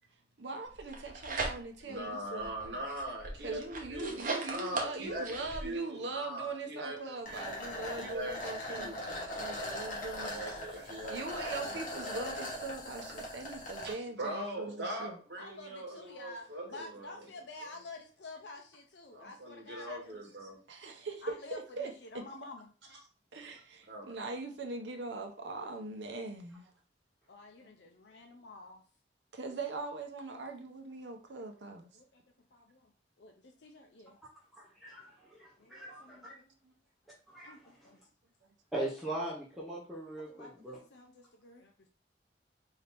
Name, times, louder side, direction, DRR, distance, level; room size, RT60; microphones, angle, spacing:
voice 1, 0.4-2.5 3.4-10.4 10.8-15.2 20.7-22.2 23.3-26.7 29.3-31.9, right 3 dB, 85° right, 0.8 m, -41 dB
sound 1, 0.8-2.0 2.4-5.6, right 3 dB, 50° right, 0.8 m, -39 dB
voice 2, 1.8-7.6 8.0-9.0 10.2-11.2 11.6-11.8 13.8-17.3 17.6-17.7 19.1-20.6 23.9-24.3, right 1 dB, 70° right, 1.2 m, -41 dB
sound 2, 7.3-13.9, left 1 dB, 45° left, 1.2 m, -40 dB
voice 3, 15.4-20.2 21.2-22.7 27.3-28.8 31.9-32.2 32.5-32.9 33.2-34.2 35.6-36.5 37.4-38.0 40.2-41.7, left 2 dB, 70° left, 0.6 m, -50 dB
voice 4, 34.6-36.2 37.3-37.6 38.7-40.8, right 1 dB, ahead, 0.8 m, -40 dB
4.1 x 2.8 x 3.4 m
head